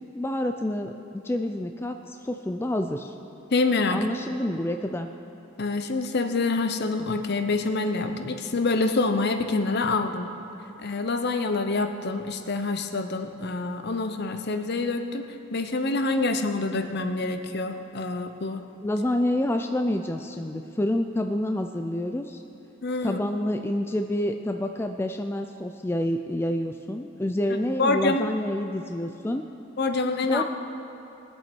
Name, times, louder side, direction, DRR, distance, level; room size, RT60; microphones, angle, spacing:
voice 1, 0.0-3.1 3.9-5.1 18.8-22.4 23.0-29.4 30.2-30.4, left 1 dB, 10° left, 6 dB, 0.3 m, -28 dB
voice 2, 3.5-4.1 5.6-10.3 10.8-15.2 15.5-18.6 22.8-23.2 27.8-28.4 29.8-30.4, left 3 dB, 55° left, 7 dB, 0.7 m, -26 dB
20.5 x 7.8 x 4.5 m, 2.9 s
head